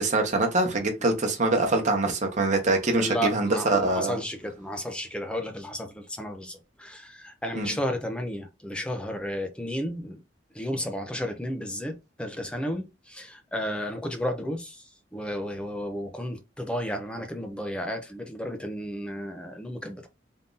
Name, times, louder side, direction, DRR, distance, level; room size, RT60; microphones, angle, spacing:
voice 1, 0.0-4.2 7.5-7.8, right 2 dB, 40° right, 1.1 m, -24 dB
voice 2, 3.0-10.2 10.5-14.8 15.1-20.1, equal, 5° left, 0.6 m, -33 dB
3.7 x 2.7 x 3.9 m
head